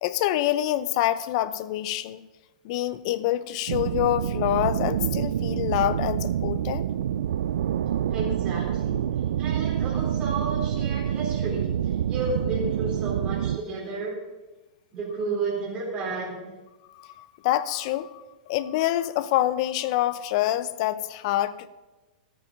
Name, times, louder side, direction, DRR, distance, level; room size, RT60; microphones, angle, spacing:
voice 1, 0.0-2.3 2.6-6.8 16.9-21.7, left 13 dB, 50° left, 15 dB, 0.7 m, -26 dB
sound 1, 3.7-13.6, right 10 dB, 80° right, 0.4 m, -27 dB
voice 2, 8.1-9.1 9.4-14.2 14.9-16.5, right 3 dB, 20° right, -5 dB, 3.9 m, -32 dB
13.5 x 8.9 x 5.3 m, 1.1 s
hypercardioid pair, 145°, 5 cm